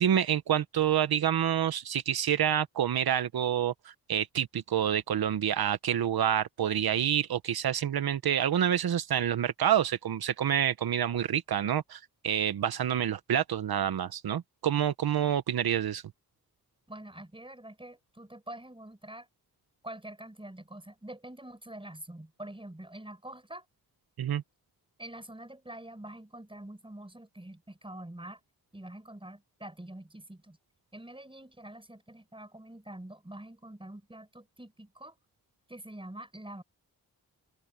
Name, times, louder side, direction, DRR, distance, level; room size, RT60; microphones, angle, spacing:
voice 1, 0.0-16.0 24.2-24.4, right 9 dB, 85° right, 0.9 m, -28 dB
voice 2, 16.9-19.3 19.8-23.6 25.0-28.4 28.7-30.6 30.9-35.2 35.7-36.6, right 1 dB, 15° right, 6.4 m, -45 dB
wide cardioid pair, 75°, 36 cm